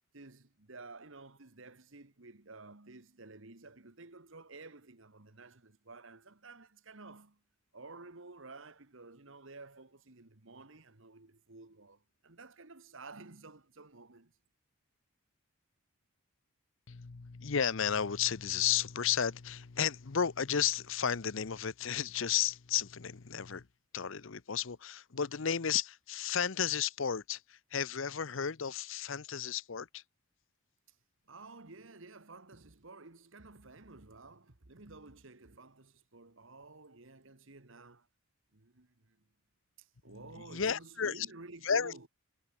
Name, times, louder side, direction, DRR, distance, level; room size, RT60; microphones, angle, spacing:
voice 1, 0.1-7.4 7.7-14.3 31.3-38.1 38.5-39.2 39.8-42.1, right 3 dB, 60° right, 1.6 m, -52 dB
voice 2, 16.9-23.7 23.9-30.0 40.5-41.3 41.6-42.1, left 8 dB, 60° left, 0.7 m, -33 dB
head